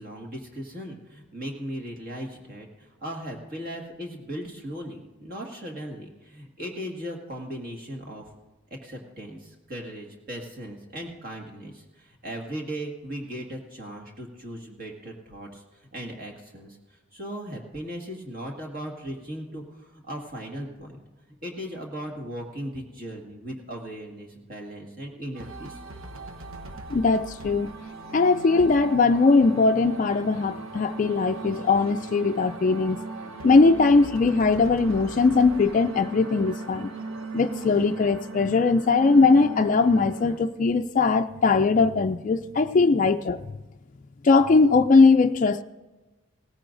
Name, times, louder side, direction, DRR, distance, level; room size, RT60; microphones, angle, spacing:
voice 1, 0.0-8.3 8.8-21.0 21.4-25.8, equal, 40° right, 1 dB, 1.8 m, -37 dB
sound 1, 25.3-40.4, right 3 dB, 80° right, 1.0 m, -38 dB
voice 2, 26.9-27.7 28.1-33.0 33.4-36.9 37.3-43.4 44.2-45.6, left 4 dB, 35° left, 7 dB, 0.3 m, -20 dB
17.0 x 15.0 x 2.6 m, 1.2 s
head